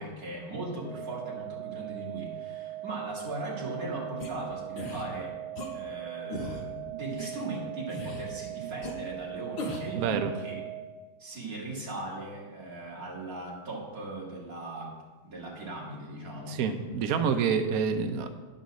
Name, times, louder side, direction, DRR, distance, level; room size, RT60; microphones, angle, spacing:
voice 1, 0.0-5.4 5.6-10.7 11.2-14.9 15.2-16.6, right 2 dB, 45° right, -4 dB, 2.6 m, -38 dB
sound 1, 0.8-10.8, right 15 dB, 35° left, 4.0 m, -40 dB
sound 2, 4.2-4.3 4.8-5.0 5.6-5.7 6.3-6.6 7.2-7.3 7.9-8.3 8.8-8.9 9.6-9.9, left 1 dB, 55° left, 1.8 m, -36 dB
voice 2, 10.0-10.3 16.5-18.3, right 6 dB, 70° right, 7 dB, 0.8 m, -27 dB
10.0 x 5.5 x 6.2 m, 1.3 s
omnidirectional pair, 2.3 m